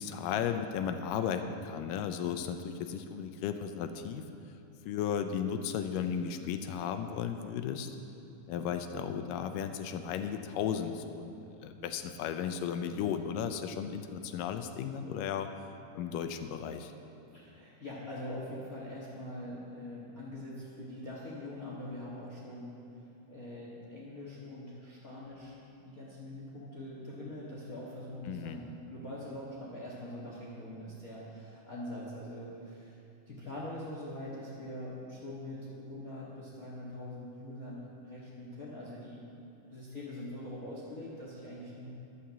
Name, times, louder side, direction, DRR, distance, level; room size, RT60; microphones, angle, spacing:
voice 1, 0.0-4.3 4.9-7.9 8.5-15.5 16.0-16.9 28.3-28.6, left 8 dB, 80° left, 8 dB, 2.2 m, -35 dB
voice 2, 17.3-25.5 25.8-33.0 33.3-39.2 39.7-41.9, left 1 dB, 45° left, -5 dB, 1.2 m, -43 dB
11.5 x 7.1 x 7.4 m, 2.7 s
omnidirectional pair, 3.9 m